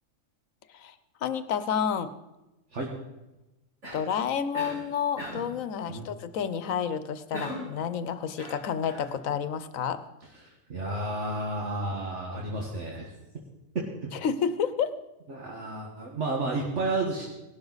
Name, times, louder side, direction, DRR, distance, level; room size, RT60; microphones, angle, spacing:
voice 1, 1.2-2.1 3.9-10.0 14.1-14.9, left 7 dB, 75° left, 12 dB, 1.2 m, -30 dB
Cough, 3.8-4.2 4.5-4.8 5.2-5.6 7.3-7.8 8.4-9.1, equal, 85° right, 4.6 m, -38 dB
voice 2, 10.4-13.1 13.8-14.2 15.3-17.3, right 2 dB, 60° right, -1 dB, 1.8 m, -32 dB
18.0 x 12.0 x 4.0 m, 1.0 s
omnidirectional pair, 1.4 m